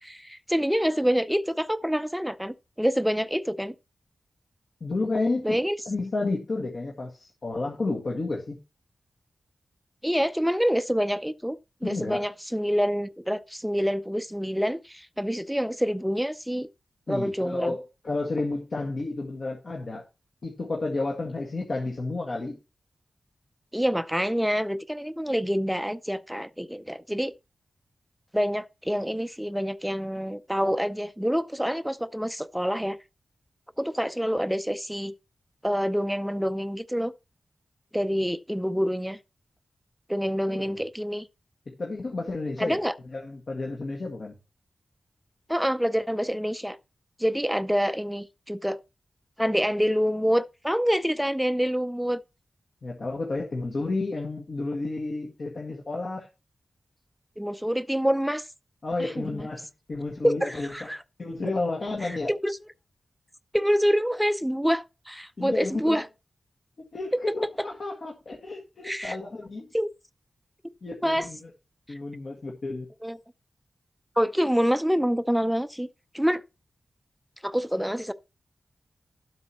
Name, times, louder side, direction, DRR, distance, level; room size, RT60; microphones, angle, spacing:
voice 1, 0.0-3.7 5.4-5.8 10.0-16.7 17.1-17.7 23.7-27.3 28.3-33.0 33.8-35.1 35.6-37.1 37.9-39.2 40.1-41.3 42.6-42.9 45.5-46.8 47.2-48.8 49.4-52.2 57.4-58.5 59.0-59.5 60.2-61.0 62.0-62.6 63.5-66.1 68.8-69.2 69.7-69.9 71.0-71.3 73.0-73.2 74.2-75.9 76.1-76.4 77.4-78.1, equal, ahead, 0.6 m, -26 dB
voice 2, 4.8-5.6 5.8-8.6 11.8-12.2 17.1-20.0 20.4-22.6 40.5-40.7 41.7-42.8 43.1-44.4 52.8-56.3 58.8-60.9 61.2-62.3 65.4-66.0 66.9-69.7 70.8-71.4 71.9-72.9, left 3 dB, 60° left, 1.9 m, -31 dB
12.5 x 8.0 x 3.0 m
wide cardioid pair, 90°, 0 cm